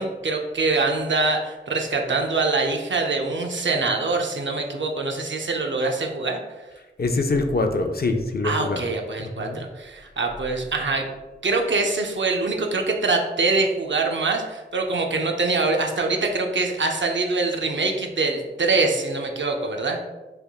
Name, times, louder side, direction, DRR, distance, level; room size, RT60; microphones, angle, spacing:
voice 1, 0.0-6.4 8.4-11.1 11.4-20.0, right 3 dB, 70° right, 2 dB, 0.5 m, -24 dB
voice 2, 7.0-8.9 9.2-9.6, left 2 dB, 55° left, 5 dB, 0.4 m, -24 dB
3.4 x 2.3 x 3.5 m, 1.2 s
wide cardioid pair, 45°, 20 cm